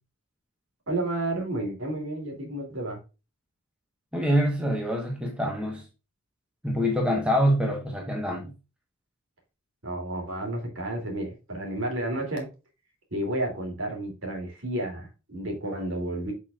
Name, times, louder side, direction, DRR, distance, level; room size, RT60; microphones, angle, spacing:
voice 1, 0.9-3.0 9.8-12.5 13.1-16.3, right 1 dB, 65° right, 2.9 m, -31 dB
voice 2, 4.1-5.8 6.6-8.5, equal, 5° right, 1.2 m, -25 dB
8.1 x 6.0 x 2.5 m
head